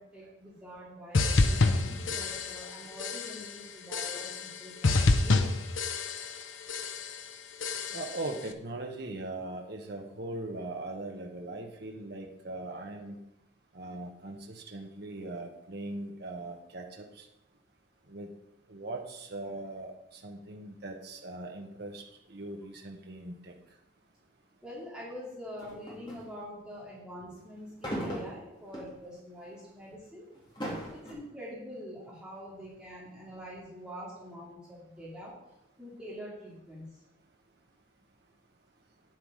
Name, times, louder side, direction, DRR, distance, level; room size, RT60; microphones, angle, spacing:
voice 1, 0.0-5.5 24.6-30.3 30.9-35.3 35.8-37.0, equal, 5° right, -7 dB, 2.4 m, -45 dB
sound 1, 1.1-2.7 3.0-3.5 3.9-4.6 4.8-6.4 6.7-7.2 7.6-8.2, left 3 dB, 70° left, 0.7 m, -28 dB
voice 2, 1.3-2.2 7.9-13.2 13.7-17.3 18.1-18.3 18.7-23.5, right 2 dB, 50° right, 2 dB, 1.0 m, -40 dB
sound 2, 25.6-26.3 27.8-29.0 29.5-29.7 30.3-31.1, equal, 25° left, 2.7 m, -37 dB
8.9 x 7.7 x 4.9 m, 0.88 s
head